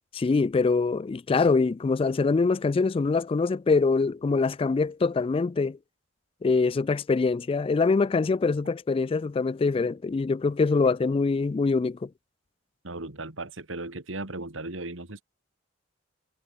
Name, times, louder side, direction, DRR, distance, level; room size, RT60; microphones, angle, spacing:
voice 1, 0.1-5.8 6.4-12.1, left 4 dB, 30° left, 0.3 m, -24 dB
voice 2, 12.8-15.2, right 2 dB, 85° right, 2.8 m, -36 dB
head